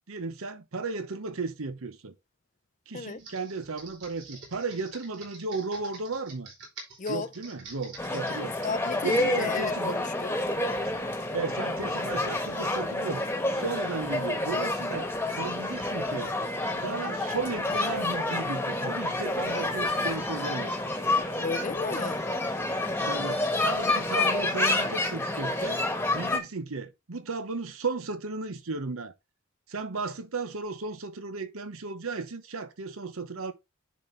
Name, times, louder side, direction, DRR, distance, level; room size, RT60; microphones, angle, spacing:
voice 1, 0.0-2.1 2.9-6.5 7.1-8.5 9.0-10.0 11.3-13.2 13.5-16.3 16.7-20.8 23.0-25.8 26.1-29.1 29.7-33.5, right 3 dB, 80° right, 0.9 m, -35 dB
Computer keyboard, 3.2-9.3, right 4 dB, 55° right, 4.3 m, -47 dB
sound 1, 8.0-26.4, left 2 dB, 10° left, 1.3 m, -29 dB
voice 2, 8.6-10.4 21.4-22.2, left 4 dB, 35° left, 0.5 m, -34 dB
10.0 x 4.2 x 3.3 m
head